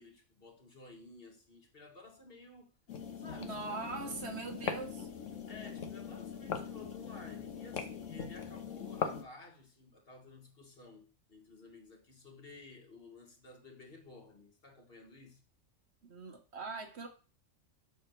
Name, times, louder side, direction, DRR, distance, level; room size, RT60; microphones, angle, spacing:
voice 1, 0.0-2.7 3.2-3.9 5.5-15.4, left 3 dB, 45° left, 1.6 m, -54 dB
sound 1, 2.9-9.2, left 7 dB, 75° left, 1.3 m, -41 dB
voice 2, 3.4-5.1 16.0-17.1, right 3 dB, 55° right, 1.3 m, -41 dB
7.5 x 6.3 x 3.0 m
omnidirectional pair, 1.3 m